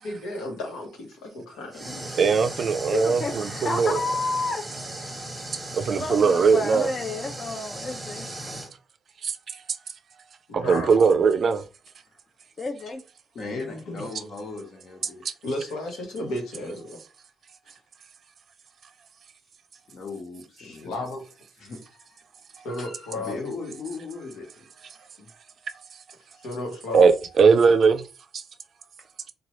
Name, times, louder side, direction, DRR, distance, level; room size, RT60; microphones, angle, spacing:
voice 1, 0.0-2.2 10.5-11.0 13.5-14.1 15.4-17.0 20.6-21.3 22.6-23.4 25.2-25.3 26.4-27.1, left 1 dB, 90° left, 0.9 m, -34 dB
sound 1, 1.7-8.7, right 1 dB, 15° right, 0.9 m, -37 dB
voice 2, 2.2-4.0 5.7-6.9 9.2-9.4 10.5-11.6 26.9-28.0 28.3-28.4, right 5 dB, 55° right, 0.3 m, -20 dB
voice 3, 2.9-4.7 6.0-8.3 12.6-13.0, left 3 dB, 35° left, 0.4 m, -30 dB
voice 4, 13.3-15.2 19.9-21.1 21.6-22.2 23.1-24.6, left 4 dB, 60° left, 1.1 m, -37 dB
2.9 x 2.3 x 2.9 m
cardioid pair, 90°, 0 cm